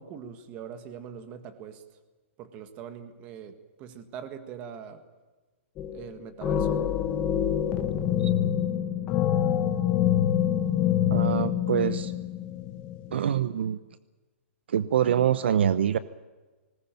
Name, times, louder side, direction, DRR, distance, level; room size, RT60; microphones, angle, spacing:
voice 1, 0.0-1.8 2.4-5.0 5.9-6.9, right 8 dB, 20° right, 9 dB, 1.7 m, -42 dB
sound 1, 5.8-6.1 6.4-13.1, left 10 dB, 15° left, 1.0 m, -26 dB
voice 2, 11.1-12.1 13.1-13.8 14.7-16.0, right 9 dB, 55° right, 15 dB, 0.8 m, -25 dB
20.5 x 19.5 x 9.1 m, 1.3 s
hypercardioid pair, 175°, 7 cm